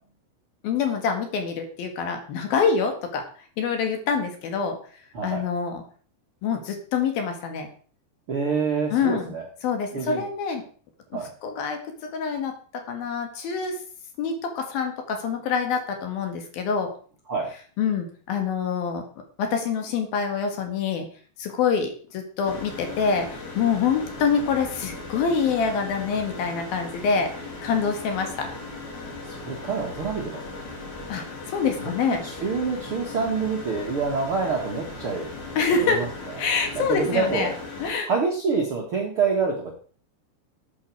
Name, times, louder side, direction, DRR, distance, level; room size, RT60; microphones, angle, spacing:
voice 1, 0.6-3.3 3.6-4.8 5.2-5.8 6.4-7.7 8.9-9.3 9.6-10.6 11.4-13.8 14.2-16.9 17.8-19.0 19.4-21.1 21.4-28.5 31.1-32.2 35.6-36.1 36.4-37.5 37.8-38.1, left 5 dB, 65° left, 5 dB, 3.3 m, -26 dB
voice 2, 8.3-9.4 9.9-10.2 11.1-11.3 17.3-17.5 29.2-30.7 31.8-35.3 35.8-36.1 36.7-37.5 38.0-39.7, right 5 dB, 50° right, -1 dB, 1.7 m, -27 dB
sound 1, 22.4-37.9, left 3 dB, 45° left, 3.8 m, -38 dB
13.5 x 8.4 x 4.7 m, 0.43 s
omnidirectional pair, 4.9 m